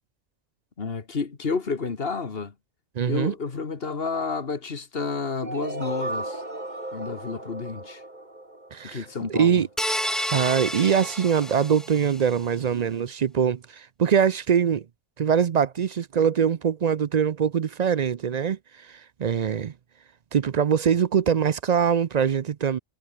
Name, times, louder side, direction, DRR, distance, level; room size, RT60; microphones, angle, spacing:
voice 1, 0.8-2.5 3.1-6.4 6.9-8.0 8.8-9.6, left 4 dB, 50° left, 1.8 m, -30 dB
voice 2, 3.0-3.3 8.7-9.7 10.3-14.8 15.2-18.6 18.9-19.7 20.3-22.8, right 7 dB, 50° right, 0.5 m, -23 dB
sound 1, 5.4-9.3, right 1 dB, 35° right, 4.3 m, -35 dB
sound 2, 9.8-12.3, equal, ahead, 1.4 m, -30 dB
omnidirectional pair, 1.3 m